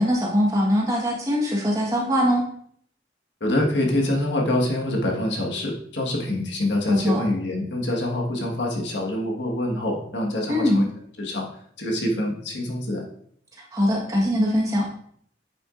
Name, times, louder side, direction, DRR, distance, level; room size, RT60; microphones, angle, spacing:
voice 1, 0.0-2.4 6.9-7.2 10.5-10.8 13.6-14.9, equal, 20° right, -2 dB, 1.4 m, -22 dB
voice 2, 3.4-10.9 11.2-11.5 11.8-13.0, left 1 dB, 75° left, 0 dB, 1.5 m, -25 dB
8.9 x 6.0 x 2.5 m, 0.63 s
head